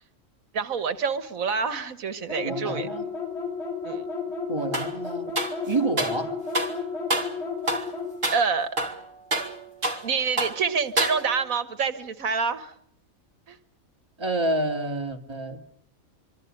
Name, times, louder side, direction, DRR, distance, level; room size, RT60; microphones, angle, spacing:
voice 1, 0.5-2.9 3.8-4.0 8.3-8.7 10.0-12.7 13.5-13.6, right 5 dB, 85° right, 11 dB, 1.7 m, -27 dB
sound 1, 2.3-8.1, left 4 dB, 50° left, 8.0 m, -32 dB
voice 2, 2.3-3.1 4.5-6.4 14.2-15.7, right 2 dB, 20° right, 3 dB, 2.5 m, -29 dB
sound 2, 4.7-5.0 5.4-6.2 6.5-6.8 7.1-7.4 7.7-7.9 8.2-8.5 8.8-10.1 10.4-10.6 11.0-11.5, right 1 dB, 40° right, 2.2 m, -28 dB
25.5 x 25.0 x 6.6 m, 0.64 s
omnidirectional pair, 1.4 m